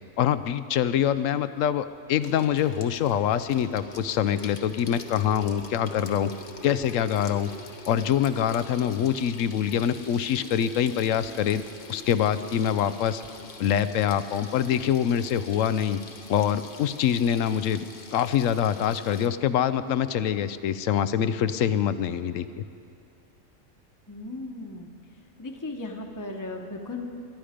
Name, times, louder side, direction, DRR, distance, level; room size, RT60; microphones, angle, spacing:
voice 1, 0.2-6.3 6.6-7.5 7.9-11.6 11.9-13.2 13.6-16.0 16.3-17.8 18.1-22.6, left 9 dB, 75° left, 13 dB, 1.0 m, -25 dB
Water tap faucet / Sink (filling or washing), 2.2-19.3, left 3 dB, 45° left, 1.1 m, -44 dB
voice 2, 24.1-24.9 25.4-27.1, left 2 dB, 15° left, 2 dB, 1.0 m, -36 dB
22.5 x 11.5 x 5.1 m, 2.5 s
omnidirectional pair, 1.4 m